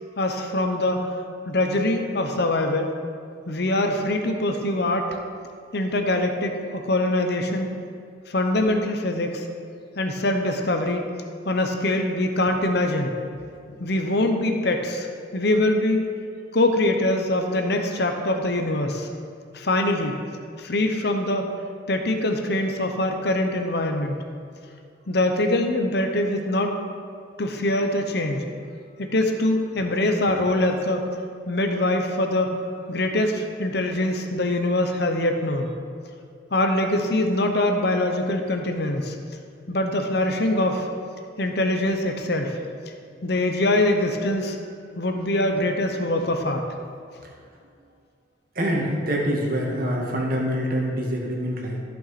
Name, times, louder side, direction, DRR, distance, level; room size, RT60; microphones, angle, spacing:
voice 1, 0.2-1.1 1.4-2.9 3.5-5.1 5.7-7.7 8.3-9.4 10.0-11.0 11.4-13.1 13.8-15.1 15.3-16.0 16.5-19.1 19.5-20.2 20.6-21.4 21.9-24.2 25.1-26.7 27.4-28.5 29.0-31.0 31.5-32.5 32.9-35.7 36.5-39.1 39.7-40.9 41.4-42.6 43.2-44.6 45.0-46.6, left 1 dB, 60° left, 4 dB, 0.9 m, -23 dB
voice 2, 48.5-51.8, equal, 50° right, -1 dB, 1.7 m, -25 dB
14.0 x 6.0 x 4.2 m, 2.3 s
head